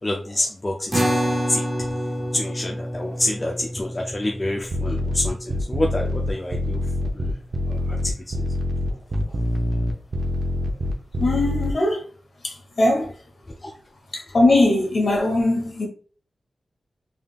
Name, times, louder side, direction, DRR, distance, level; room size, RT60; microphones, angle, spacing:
voice 1, 0.0-1.6 2.3-6.8 7.1-7.3 7.7-8.5 13.6-13.7, left 1 dB, 25° left, 0.5 m, -27 dB
sound 1, 0.9-7.5, equal, 15° right, 0.6 m, -29 dB
sound 2, 4.7-11.7, left 1 dB, 60° right, 0.6 m, -25 dB
voice 2, 11.2-12.0 12.4-13.1 14.1-15.9, left 2 dB, 55° left, 1.3 m, -20 dB
3.6 x 3.4 x 2.4 m
wide cardioid pair, 100°, 0 cm